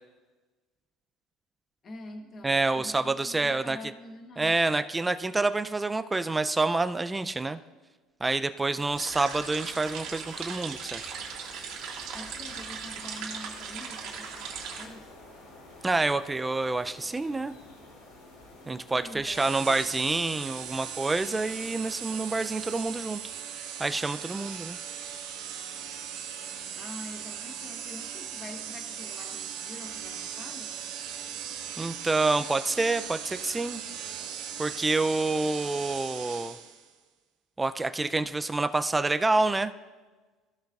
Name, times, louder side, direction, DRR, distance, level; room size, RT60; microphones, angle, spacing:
voice 1, 1.8-4.6 12.1-15.1 18.9-19.9 26.7-30.7, left 1 dB, 35° left, 4 dB, 1.0 m, -45 dB
voice 2, 2.4-3.8 4.4-7.6 8.2-11.1 15.8-17.5 18.7-23.2 23.8-24.8 31.8-33.8 34.6-36.6 37.6-39.7, right 3 dB, 15° right, 11 dB, 0.3 m, -27 dB
sound 1, 8.7-22.8, left 2 dB, 90° left, 2.4 m, -51 dB
sound 2, 8.9-14.8, right 6 dB, 65° right, 1.8 m, -38 dB
sound 3, 19.3-36.9, right 8 dB, 85° right, 1.2 m, -39 dB
15.0 x 6.3 x 2.4 m, 1.3 s
cardioid pair, 120°, 0 cm